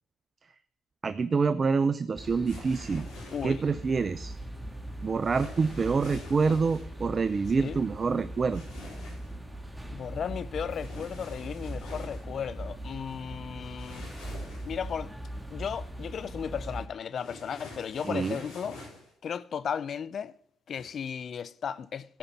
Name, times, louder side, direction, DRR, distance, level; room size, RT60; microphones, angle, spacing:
voice 1, 1.0-3.1 3.4-4.4 5.0-8.6 18.0-18.4, right 4 dB, 40° right, 0.4 m, -27 dB
sound 1, 2.1-16.9, right 1 dB, 10° right, 1.7 m, -40 dB
sound 2, 2.5-3.7 5.2-6.9 8.5-9.3 10.8-12.2 13.8-14.9 17.2-19.1 20.7-20.9, left 2 dB, 85° left, 4.2 m, -47 dB
voice 2, 3.3-3.6 7.6-7.8 9.8-14.1 14.7-15.1 15.5-18.8 19.2-20.3 20.7-22.2, left 7 dB, 55° left, 0.4 m, -35 dB
13.0 x 5.1 x 5.8 m
hypercardioid pair, 55°, 0 cm